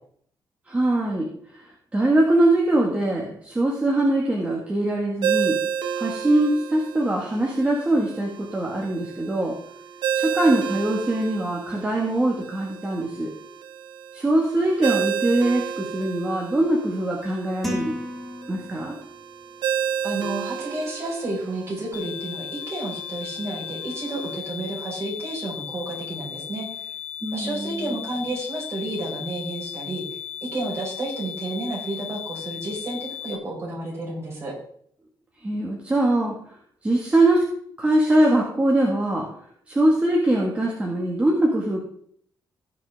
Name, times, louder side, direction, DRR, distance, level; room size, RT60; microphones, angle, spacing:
voice 1, 0.7-1.6 1.9-5.6 6.0-9.5 10.1-13.3 14.1-17.9 18.5-19.0 27.2-27.8 35.4-36.3 36.8-37.5 37.8-39.3 39.7-41.8, right 1 dB, 15° right, -2 dB, 1.9 m, -22 dB
Ringtone, 5.2-24.4, right 8 dB, 70° right, 1.0 m, -32 dB
sound 1, 17.6-19.1, left 1 dB, ahead, 2.1 m, -32 dB
voice 2, 20.0-26.9 27.3-30.2 30.5-34.5, right 2 dB, 35° right, -4 dB, 5.5 m, -31 dB
sound 2, 21.9-33.4, left 10 dB, 40° left, 1.0 m, -36 dB
17.5 x 6.1 x 3.7 m, 0.62 s
wide cardioid pair, 155°, 9 cm